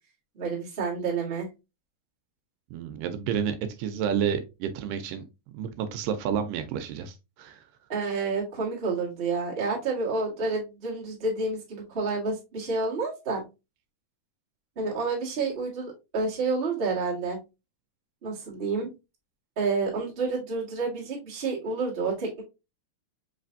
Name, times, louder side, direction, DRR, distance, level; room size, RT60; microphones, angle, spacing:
voice 1, 0.3-1.5 7.9-13.4 14.7-17.4 18.2-18.9 19.6-22.4, right 4 dB, 30° right, 1.0 m, -29 dB
voice 2, 2.7-5.2 5.5-7.6, right 8 dB, 80° right, 2.1 m, -30 dB
5.0 x 3.3 x 2.5 m
omnidirectional pair, 3.9 m